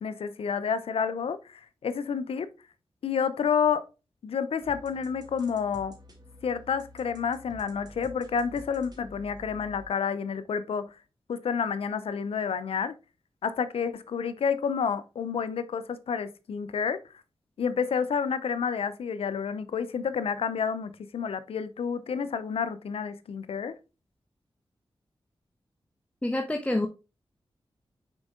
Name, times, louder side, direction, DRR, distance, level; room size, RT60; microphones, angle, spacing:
voice 1, 0.0-2.5 3.0-3.8 4.2-5.9 6.4-10.8 11.3-12.9 13.4-17.0 17.6-23.7, left 6 dB, 90° left, 0.6 m, -29 dB
sound 1, 4.6-9.9, equal, 45° right, 2.0 m, -49 dB
voice 2, 26.2-26.9, left 1 dB, 15° left, 0.9 m, -27 dB
6.2 x 4.5 x 3.6 m
cardioid pair, 50°, 10 cm